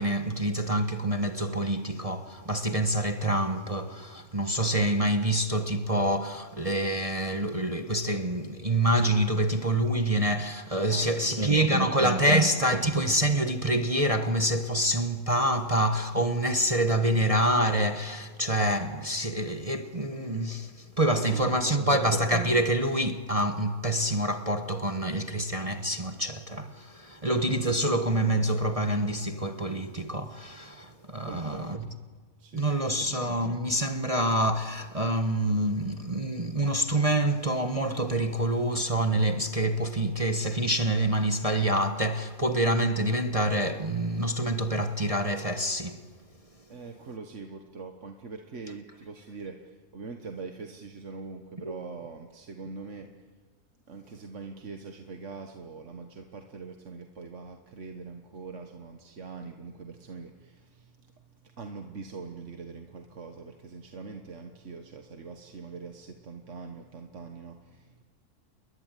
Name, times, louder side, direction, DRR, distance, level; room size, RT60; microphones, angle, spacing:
voice 1, 0.0-31.9 32.5-46.0, right 1 dB, 25° right, 1.2 m, -26 dB
voice 2, 10.9-12.7 21.2-22.1 31.2-31.9 32.4-33.1 46.7-53.1 53.9-68.0, right 4 dB, 50° right, 1.6 m, -43 dB
29.5 x 21.5 x 9.2 m
omnidirectional pair, 1.7 m